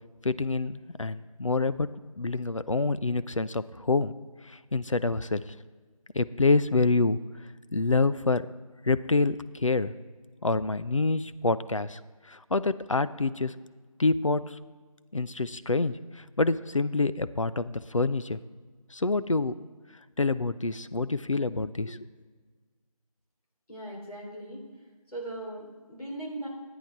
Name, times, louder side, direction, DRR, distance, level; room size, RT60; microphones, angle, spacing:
voice 1, 0.2-1.9 2.2-4.1 4.4-5.4 6.1-7.2 7.7-8.5 8.8-9.9 10.4-12.0 12.3-13.5 14.0-14.6 15.1-18.4 18.9-19.5 20.2-22.0, left 3 dB, 60° left, 14 dB, 0.4 m, -27 dB
voice 2, 23.7-24.6 25.1-26.5, right 1 dB, 85° left, -2 dB, 3.8 m, -38 dB
11.0 x 9.1 x 4.5 m, 1.5 s
figure-of-eight pair, 170°, 19 cm